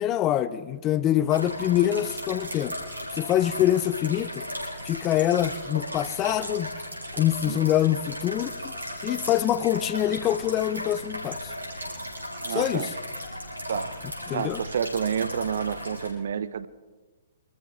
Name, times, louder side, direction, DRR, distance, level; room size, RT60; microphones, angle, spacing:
voice 1, 0.0-2.8 3.1-4.4 4.9-6.7 7.1-8.7 9.0-11.5 12.5-12.9 14.3-14.6, left 12 dB, 25° left, 0.6 m, -25 dB
sound 1, 1.3-16.1, equal, 90° right, 4.7 m, -36 dB
voice 2, 12.4-12.9 13.7-14.0 14.3-16.7, right 7 dB, 60° right, 0.7 m, -29 dB
24.5 x 13.5 x 3.5 m
figure-of-eight pair, 120°, 0 cm